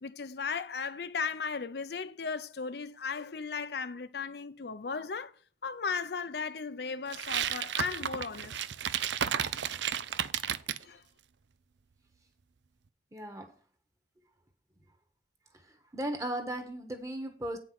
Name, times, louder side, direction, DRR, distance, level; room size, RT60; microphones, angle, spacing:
voice 1, 0.0-5.3 5.6-8.6 10.8-11.0, left 5 dB, 60° left, 0.6 m, -36 dB
sound 1, 7.1-10.8, right 9 dB, 80° right, 0.5 m, -32 dB
voice 2, 13.1-13.6 15.5-17.6, right 1 dB, 20° right, 1.4 m, -37 dB
9.0 x 5.8 x 5.9 m
head